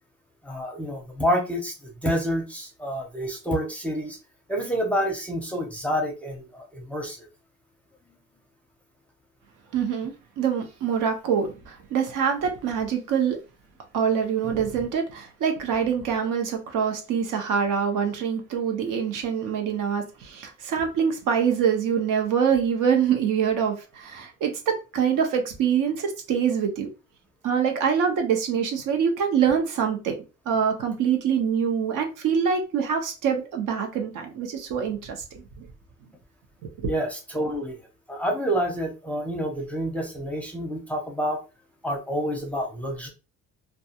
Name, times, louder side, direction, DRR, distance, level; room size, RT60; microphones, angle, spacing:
voice 1, 0.4-4.2 4.5-7.3 36.9-37.8 38.1-41.4 41.8-43.1, equal, 5° left, 0.5 m, -28 dB
voice 2, 9.7-13.4 13.9-26.9 27.4-30.1 30.5-35.6 36.8-36.9, right 7 dB, 75° right, 0.8 m, -25 dB
2.3 x 2.3 x 2.8 m
cardioid pair, 140°, 32 cm